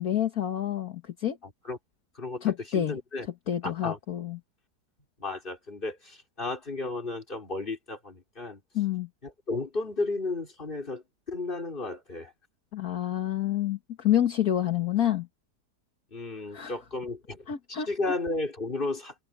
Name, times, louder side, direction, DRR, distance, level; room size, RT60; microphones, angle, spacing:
voice 1, 0.0-1.4 2.4-3.0 3.5-4.4 8.7-9.1 12.7-15.3 16.5-16.7 17.5-17.9, left 11 dB, 60° left, 1.8 m, -28 dB
voice 2, 1.4-1.8 2.1-3.3 3.6-4.0 5.2-8.6 9.2-12.3 16.1-19.1, left 3 dB, 30° left, 4.0 m, -34 dB
omnidirectional pair, 1.8 m